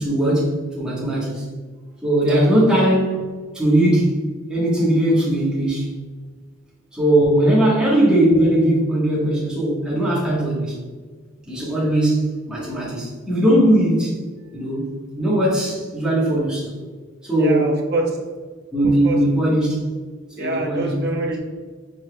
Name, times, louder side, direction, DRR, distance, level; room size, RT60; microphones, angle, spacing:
voice 1, 0.0-1.4 2.0-3.3 3.5-4.2 4.5-5.9 6.9-10.8 11.5-14.2 14.5-16.7 17.2-17.8 18.7-19.9 20.4-21.0, right 1 dB, 5° right, -7 dB, 1.3 m, -19 dB
voice 2, 2.2-2.5 7.3-7.5 17.4-18.1 18.8-19.2 20.4-21.4, right 2 dB, 50° right, -1 dB, 0.8 m, -25 dB
4.9 x 4.2 x 2.3 m, 1.4 s
head